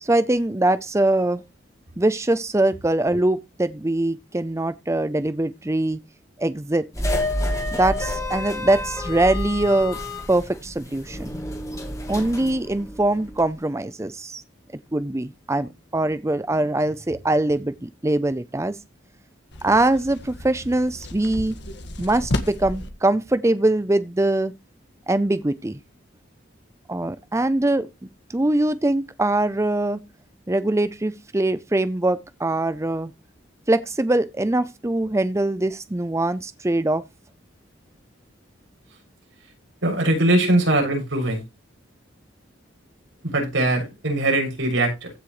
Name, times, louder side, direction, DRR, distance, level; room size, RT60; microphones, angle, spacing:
voice 1, 0.0-1.4 2.0-6.0 6.4-6.9 7.7-10.0 10.3-11.3 12.1-14.4 14.9-18.8 19.6-21.6 22.0-24.5 25.1-25.8 26.9-27.9 28.3-30.0 30.5-33.1 33.7-37.0, right 2 dB, 15° right, 0.5 m, -22 dB
sound 1, 6.9-13.5, left 1 dB, 15° left, 2.9 m, -29 dB
sound 2, 19.5-22.9, left 1 dB, 60° left, 1.7 m, -32 dB
voice 2, 39.8-41.4 43.3-45.1, right 1 dB, 85° right, 6.7 m, -21 dB
15.5 x 6.7 x 3.1 m
head